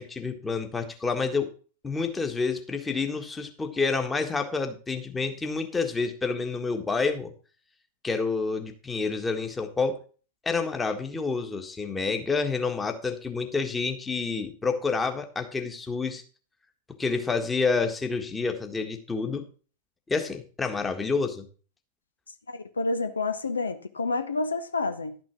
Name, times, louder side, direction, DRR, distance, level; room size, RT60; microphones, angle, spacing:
voice 1, 0.0-1.5 1.8-7.3 8.0-10.0 10.4-16.2 17.0-19.4 20.1-21.5, left 4 dB, 15° left, 1.6 m, -28 dB
voice 2, 22.5-25.2, left 3 dB, 75° left, 0.7 m, -29 dB
12.0 x 6.1 x 5.9 m
figure-of-eight pair, 90°, 0 cm